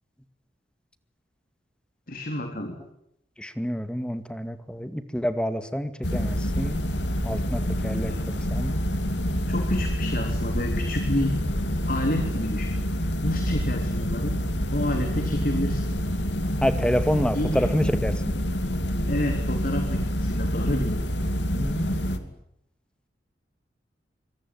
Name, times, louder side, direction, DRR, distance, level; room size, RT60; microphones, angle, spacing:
voice 1, 2.1-2.8 8.1-8.3 9.5-11.4 11.9-12.8 13.2-14.4 14.7-15.8 17.3-17.8 19.1-21.0, left 1 dB, 55° left, 5 dB, 3.7 m, -29 dB
voice 2, 3.4-6.8 7.2-8.7 16.6-18.3 21.5-22.3, equal, 5° left, 10 dB, 2.1 m, -28 dB
sound 1, 6.0-22.2, equal, 85° left, 2.9 m, -27 dB
25.0 x 25.0 x 9.4 m, 0.79 s
head